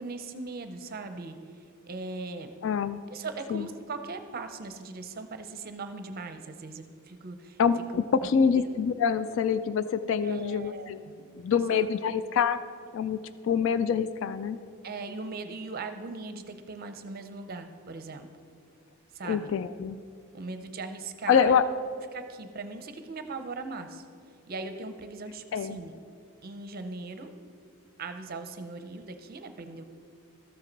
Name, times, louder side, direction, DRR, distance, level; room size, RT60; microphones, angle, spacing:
voice 1, 0.0-1.4 1.8-2.5 3.1-7.6 8.4-8.7 10.2-10.9 11.5-11.8 14.8-18.3 19.1-19.5 20.3-21.5 22.1-24.1 24.5-25.9 26.4-27.3 28.0-29.8, right 3 dB, 45° right, 8 dB, 0.6 m, -39 dB
voice 2, 2.6-3.0 3.5-3.7 7.6-7.8 8.1-11.0 11.3-12.6 12.9-14.6 19.2-20.0 21.3-21.6 25.5-25.8, left 7 dB, 60° left, 13 dB, 0.3 m, -26 dB
13.0 x 7.4 x 3.9 m, 2.3 s
head